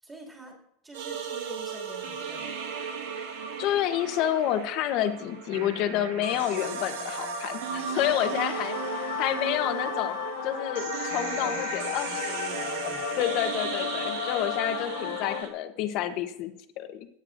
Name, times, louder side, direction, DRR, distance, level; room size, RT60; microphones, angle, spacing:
voice 1, 0.0-2.6 9.1-9.2 11.4-13.2, right 1 dB, 10° right, -2 dB, 2.4 m, -45 dB
sound 1, 0.9-15.5, right 5 dB, 90° right, 1.7 m, -35 dB
voice 2, 3.6-10.2 10.4-12.2 13.2-17.1, left 11 dB, 40° left, 9 dB, 0.9 m, -29 dB
sound 2, 8.4-15.4, left 15 dB, 65° left, 0.4 m, -34 dB
17.0 x 9.6 x 2.5 m, 0.78 s
supercardioid pair, 170°, 0 cm